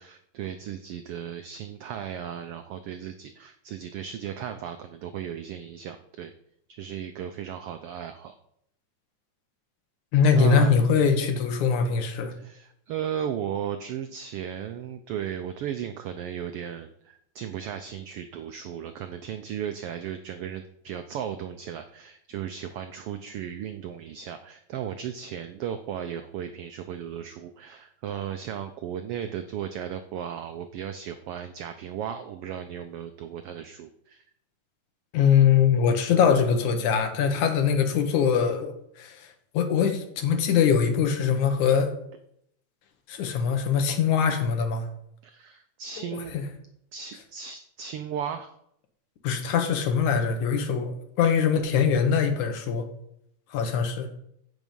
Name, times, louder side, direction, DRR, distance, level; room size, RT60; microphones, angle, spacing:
voice 1, 0.0-6.3 6.7-8.3 10.3-10.7 12.4-34.2 45.2-46.4 46.9-48.5 53.7-53.9, right 9 dB, 90° right, 8 dB, 1.2 m, -36 dB
voice 2, 10.1-12.3 35.1-39.3 39.5-41.9 43.1-44.9 46.1-46.5 49.2-52.9 53.5-54.1, left 6 dB, 80° left, 6 dB, 2.7 m, -22 dB
15.5 x 6.0 x 5.4 m, 0.75 s
omnidirectional pair, 3.4 m